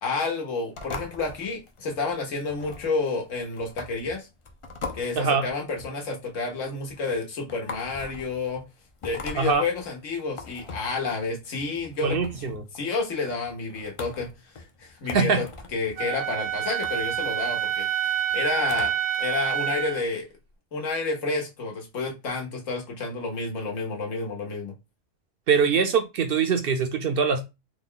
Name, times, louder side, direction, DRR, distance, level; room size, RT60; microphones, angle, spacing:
voice 1, 0.0-4.3 4.9-8.6 9.0-12.2 12.7-14.3 14.6-15.5 15.7-17.9 18.3-20.3 20.7-24.7, left 3 dB, 90° left, 1.4 m, -30 dB
sound 1, 0.7-19.2, left 3 dB, 55° left, 0.3 m, -42 dB
voice 2, 5.2-5.5 9.3-9.6 12.0-12.6 15.1-15.4 25.5-27.4, right 5 dB, 60° right, 0.6 m, -23 dB
Wind instrument woodwind instrument, 16.0-20.0, right 10 dB, 85° right, 1.0 m, -27 dB
3.6 x 2.1 x 3.7 m
omnidirectional pair, 1.3 m